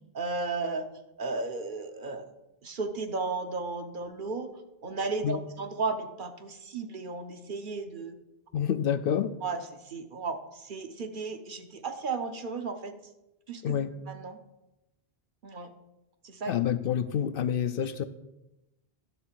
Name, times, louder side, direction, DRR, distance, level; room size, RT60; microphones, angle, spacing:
voice 1, 0.1-0.8 1.2-2.2 2.6-4.5 4.8-8.2 9.4-12.9 13.5-14.4 15.4-15.7 16.2-16.5, right 3 dB, 55° right, 6 dB, 1.0 m, -34 dB
voice 2, 8.5-9.4 13.6-13.9 16.5-18.0, left 9 dB, 65° left, 12 dB, 0.7 m, -28 dB
11.5 x 4.0 x 7.5 m, 0.95 s
omnidirectional pair, 1.0 m